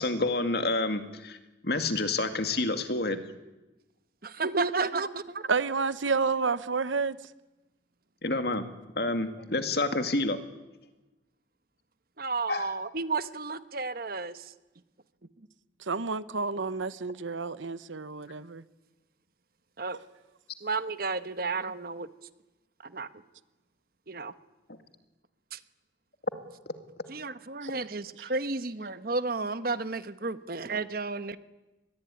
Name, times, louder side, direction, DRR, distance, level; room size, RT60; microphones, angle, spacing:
voice 1, 0.0-1.4 1.6-3.2 8.2-8.7 9.0-10.4 12.5-12.8, left 2 dB, 55° left, 2.3 m, -28 dB
voice 2, 4.2-5.5 12.2-14.5 19.8-20.0 20.6-22.1 22.8-23.1 24.1-24.3 25.5-25.6 27.1-31.4, right 3 dB, 50° right, 1.1 m, -32 dB
voice 3, 5.5-7.2 15.9-18.6, right 4 dB, 85° right, 1.0 m, -29 dB
25.0 x 20.5 x 9.9 m
head